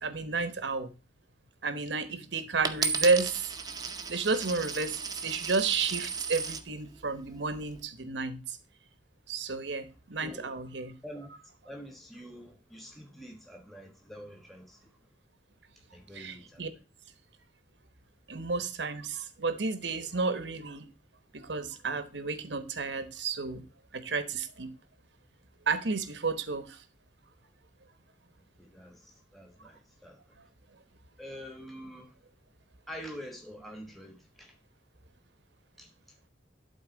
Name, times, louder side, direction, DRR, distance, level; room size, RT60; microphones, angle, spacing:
voice 1, 0.0-0.9 1.6-3.5 4.1-8.6 9.3-10.9 16.1-16.7 18.3-20.9 21.3-23.6 23.9-24.7 25.7-26.8, right 4 dB, 80° right, 1.1 m, -31 dB
Coin (dropping), 2.6-6.7 7.4-7.8, right 5 dB, 20° right, 0.7 m, -35 dB
voice 2, 11.6-14.9 15.9-16.6 28.6-30.4 31.2-32.1 32.9-34.6 35.8-35.9, equal, ahead, 1.2 m, -46 dB
12.0 x 4.0 x 3.9 m
head